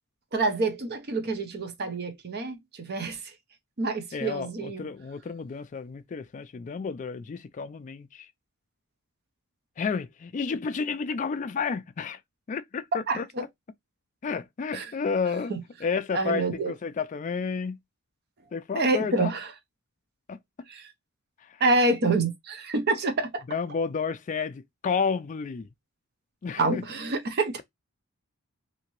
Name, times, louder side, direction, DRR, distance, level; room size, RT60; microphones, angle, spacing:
voice 1, 0.3-3.2 3.8-4.8 13.1-13.4 14.7-14.9 15.5-15.6 16.1-16.7 18.8-19.5 20.7-20.9 21.6-23.4 26.6-27.6, right 3 dB, 45° right, 0.6 m, -27 dB
voice 2, 4.1-8.3 9.8-12.2 12.5-13.3 14.2-15.5 15.8-17.8 18.5-19.3 20.3-20.4 21.5-21.6 23.5-25.7 26.4-26.8, left 5 dB, 35° left, 0.3 m, -31 dB
2.8 x 2.7 x 2.9 m
head